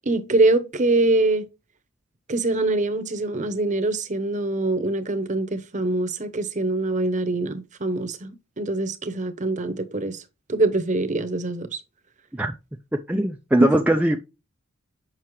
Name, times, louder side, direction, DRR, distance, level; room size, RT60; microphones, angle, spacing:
voice 1, 0.1-1.5 2.3-10.2 10.5-11.8 13.6-13.8, right 2 dB, 35° right, 0.8 m, -24 dB
voice 2, 13.1-14.2, right 1 dB, 5° right, 0.4 m, -20 dB
7.4 x 5.6 x 3.1 m
head